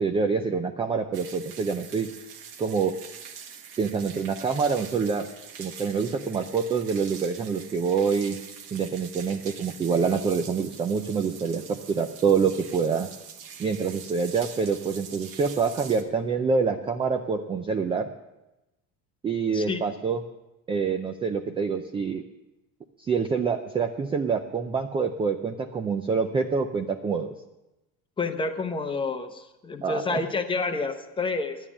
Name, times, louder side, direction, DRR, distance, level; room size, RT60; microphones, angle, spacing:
voice 1, 0.0-2.1 2.6-2.9 3.8-5.3 5.6-8.4 8.7-13.1 13.6-18.1 19.2-20.2 20.7-22.2 23.0-27.3 29.8-30.2, right 5 dB, 15° right, 6 dB, 0.4 m, -26 dB
sound 1, 1.1-16.0, right 7 dB, 65° right, 1.6 m, -44 dB
voice 2, 28.2-31.6, left 3 dB, 15° left, 7 dB, 0.8 m, -29 dB
11.5 x 9.1 x 7.2 m, 0.97 s
cardioid pair, 165°, 35 cm